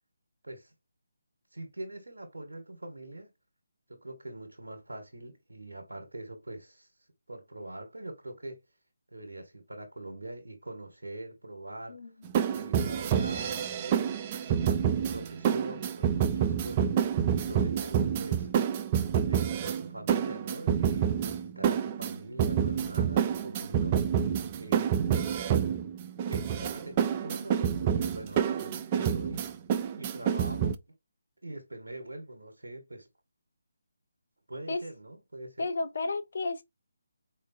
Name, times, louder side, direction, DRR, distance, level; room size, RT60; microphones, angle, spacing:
voice 1, 1.5-3.3 3.9-6.9 7.3-8.6 9.1-12.0 12.5-16.9 17.3-18.5 19.2-24.1 24.6-25.0 26.1-29.5 30.0-30.8 31.4-33.1 34.5-35.7, right 1 dB, 90° right, 1.2 m, -43 dB
sound 1, 12.3-30.7, right 8 dB, 25° right, 0.5 m, -28 dB
voice 2, 35.6-36.6, left 3 dB, 60° left, 0.8 m, -32 dB
4.4 x 3.1 x 2.5 m
figure-of-eight pair, 155°, 0 cm